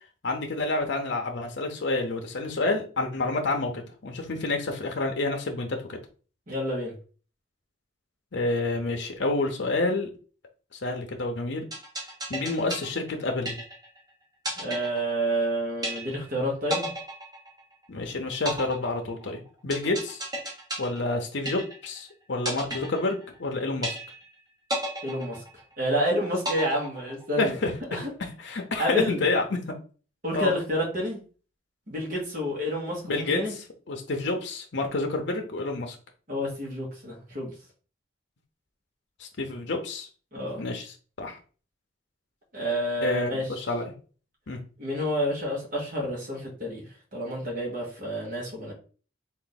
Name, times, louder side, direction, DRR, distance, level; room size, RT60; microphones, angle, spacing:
voice 1, 0.2-6.0 8.3-10.1 10.7-11.6 12.3-13.6 17.9-20.2 20.8-24.0 27.4-27.7 28.4-29.6 30.3-30.5 33.0-33.4 33.9-36.0 39.2-40.1 40.6-40.9 41.2-41.4 43.0-43.9 44.5-44.6, left 2 dB, 60° left, 3 dB, 0.7 m, -28 dB
voice 2, 6.5-6.9 14.6-16.9 25.0-25.4 25.8-27.5 27.9-28.1 28.8-29.2 30.2-31.2 31.9-33.5 36.3-37.5 40.3-40.6 42.5-43.5 44.8-46.8 47.1-48.7, equal, 40° right, -3 dB, 1.3 m, -29 dB
sound 1, 11.7-14.0 14.4-15.5 15.8-16.4 16.7-18.0 18.5-22.0 22.5-23.5 23.8-24.4 24.7-26.0 26.4-27.5, equal, 20° right, 1.0 m, -33 dB
3.6 x 2.5 x 4.0 m, 0.38 s
head